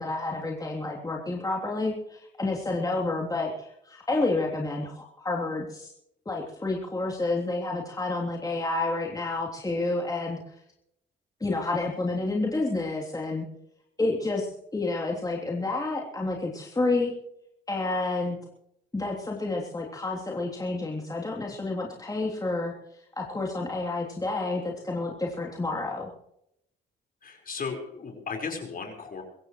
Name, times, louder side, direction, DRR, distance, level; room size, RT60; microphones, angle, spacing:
voice 1, 0.0-5.9 6.2-10.4 11.4-13.5 14.0-17.1 17.7-18.4 18.9-26.1, left 2 dB, 20° left, -2 dB, 3.3 m, -29 dB
voice 2, 27.2-29.2, left 5 dB, 45° left, 3 dB, 4.9 m, -35 dB
24.0 x 15.5 x 3.2 m, 0.78 s
cardioid pair, 90°, 20 cm